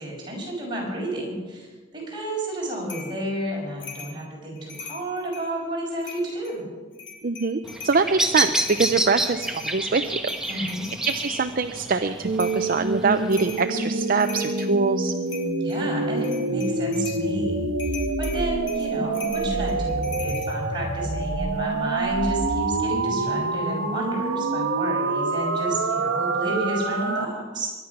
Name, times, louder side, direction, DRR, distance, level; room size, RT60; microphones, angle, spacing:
voice 1, 0.0-6.7 10.5-10.8 15.6-17.6 18.2-27.7, right 1 dB, 25° right, -3 dB, 6.3 m, -31 dB
sound 1, 2.9-3.2 3.8-4.2 4.6-5.5 6.0-6.5 6.9-8.0 8.4-11.3 12.4-12.7 13.3-13.7 14.1-14.8 15.3-15.8 16.2-17.3 17.8-20.5, left 6 dB, 65° left, 3.1 m, -40 dB
voice 2, 7.2-10.7 11.0-15.1, right 4 dB, 45° right, 8 dB, 0.6 m, -24 dB
Bird vocalization bird call bird song, 7.6-13.6, right 1 dB, 5° right, 1.1 m, -29 dB
sound 2, 12.2-27.3, right 3 dB, 80° right, 1.3 m, -26 dB
22.5 x 10.5 x 6.0 m, 1.4 s
head